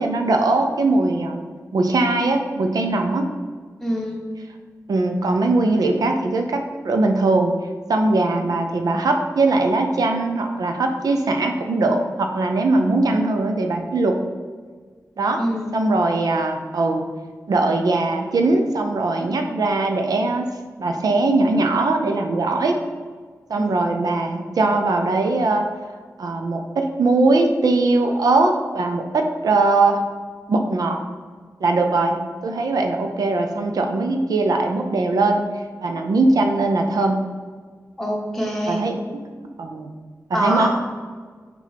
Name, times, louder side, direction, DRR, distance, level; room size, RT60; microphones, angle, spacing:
voice 1, 0.0-1.5 1.7-3.3 4.9-7.5 7.9-14.2 15.2-15.4 15.7-17.0 17.5-20.5 20.8-22.7 23.5-25.7 26.2-30.0 30.5-31.0 31.6-35.4 35.8-37.3 38.7-39.0 39.6-39.9 40.3-40.7, right 2 dB, 85° right, 4 dB, 0.6 m, -20 dB
voice 2, 3.8-4.2 15.4-15.7 23.6-23.8 38.0-38.8 40.3-40.7, equal, 5° left, -3 dB, 1.4 m, -25 dB
6.5 x 5.2 x 3.4 m, 1.6 s
wide cardioid pair, 135°, 6 cm